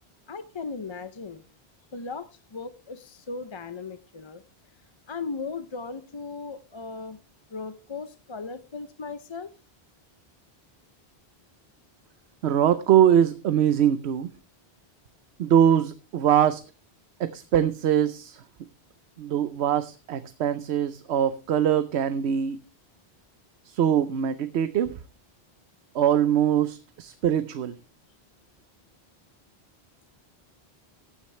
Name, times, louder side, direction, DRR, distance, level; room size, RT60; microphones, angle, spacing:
voice 1, 0.3-1.4 1.9-4.4 5.1-7.2 7.5-9.5, left 4 dB, 35° left, 11 dB, 0.5 m, -37 dB
voice 2, 12.4-14.3 15.4-16.6 17.2-18.4 19.2-22.6 23.6-24.9 25.9-27.8, right 9 dB, 85° right, 12 dB, 1.0 m, -22 dB
15.0 x 9.5 x 3.2 m, 0.33 s
omnidirectional pair, 1.1 m